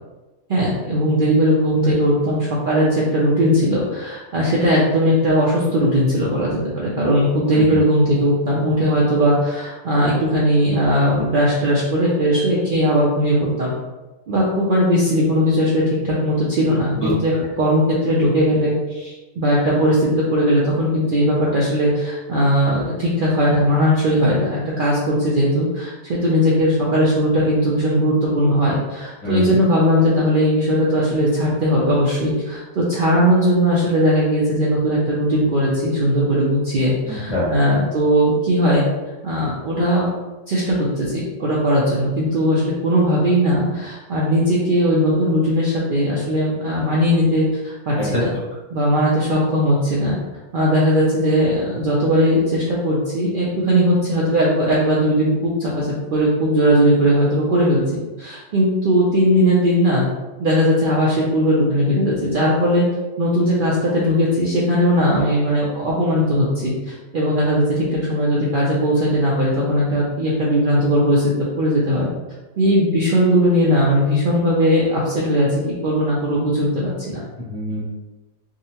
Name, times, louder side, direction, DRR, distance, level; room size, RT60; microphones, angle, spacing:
voice 1, 0.5-13.7 14.3-17.3 17.6-38.9 39.2-40.1 40.5-48.3 48.7-50.2 50.5-57.8 58.2-60.0 60.4-62.9 63.2-72.1 72.6-77.2, equal, 60° right, -5 dB, 0.6 m, -18 dB
voice 2, 29.2-29.6 37.1-37.5 48.0-48.2 77.4-77.9, left 1 dB, 30° left, -8 dB, 0.7 m, -25 dB
3.6 x 2.1 x 2.8 m, 1.1 s
omnidirectional pair, 1.4 m